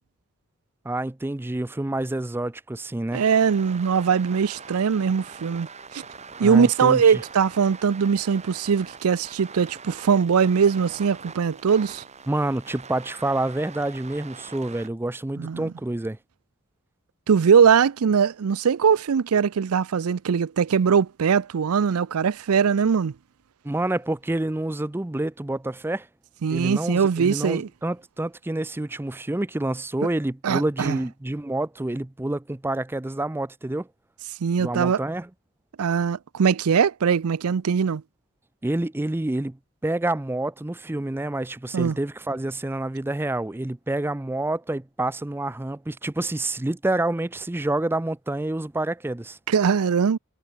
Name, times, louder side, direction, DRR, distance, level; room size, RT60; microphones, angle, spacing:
voice 1, 0.8-3.2 6.4-7.2 12.3-16.2 23.6-26.1 26.5-33.9 34.6-35.3 38.6-39.6 39.8-49.4, right 2 dB, 10° right, 0.4 m, -28 dB
sound 1, 3.1-14.9, right 5 dB, 30° right, 2.5 m, -43 dB
voice 2, 3.1-5.7 5.9-6.0 6.4-12.0 15.4-15.7 17.3-23.1 26.4-27.7 30.4-31.0 34.4-35.0 35.8-38.0 41.7-42.0 49.5-50.2, right 6 dB, 75° right, 0.5 m, -21 dB
head